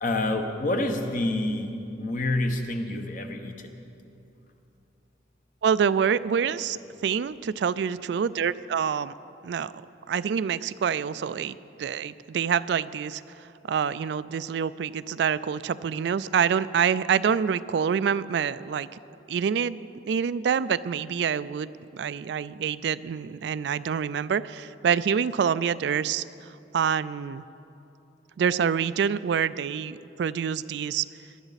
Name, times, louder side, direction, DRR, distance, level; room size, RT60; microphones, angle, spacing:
voice 1, 0.0-3.7, left 2 dB, 45° left, 5 dB, 1.1 m, -28 dB
voice 2, 5.6-9.1 9.4-9.7 10.1-13.2 13.7-18.9 19.3-26.5 26.7-27.4 28.4-31.1, right 7 dB, 65° right, 16 dB, 0.3 m, -26 dB
20.0 x 11.5 x 4.1 m, 2.8 s
head